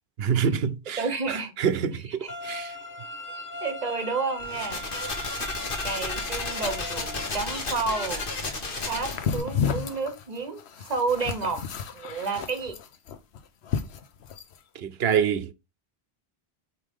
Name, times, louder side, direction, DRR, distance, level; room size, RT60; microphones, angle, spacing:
voice 1, 0.2-2.7 14.8-15.5, right 7 dB, 70° right, 0.9 m, -26 dB
voice 2, 1.0-1.5 1.9-2.3 3.6-4.8 5.8-8.3 8.8-11.7 11.9-12.8, right 4 dB, 40° right, 0.9 m, -31 dB
sound 1, 2.3-7.3, left 1 dB, 20° left, 0.6 m, -38 dB
sound 2, 4.4-9.4, left 3 dB, 55° left, 1.5 m, -33 dB
sound 3, 8.7-14.6, left 7 dB, 80° left, 1.0 m, -32 dB
8.1 x 3.2 x 3.6 m
omnidirectional pair, 1.1 m